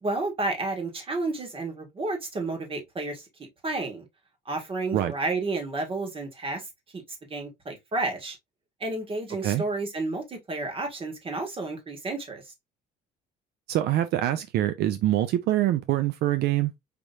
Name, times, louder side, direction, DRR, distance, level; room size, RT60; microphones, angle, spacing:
voice 1, 0.0-3.2 3.6-4.1 4.5-6.7 6.9-7.0 7.3-8.4 8.8-12.5, right 2 dB, 30° right, 1.8 m, -31 dB
voice 2, 13.7-16.7, right 13 dB, 75° right, 0.5 m, -24 dB
5.1 x 3.1 x 2.7 m
cardioid pair, 110°, 17 cm